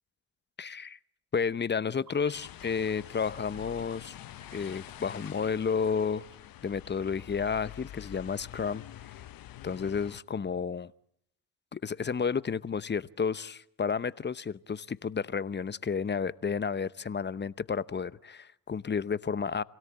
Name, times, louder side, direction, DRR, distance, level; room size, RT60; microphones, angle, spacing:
voice 1, 0.6-1.0 1.3-4.2 4.5-6.2 6.6-8.8 9.6-10.9 11.7-19.6, left 6 dB, 25° left, 17 dB, 0.9 m, -31 dB
sound 1, 2.1-7.7, right 5 dB, 55° right, 6.6 m, -57 dB
sound 2, 2.3-10.2, left 13 dB, 60° left, 1.2 m, -47 dB
27.0 x 17.5 x 8.8 m, 0.74 s
hypercardioid pair, 60°, 40 cm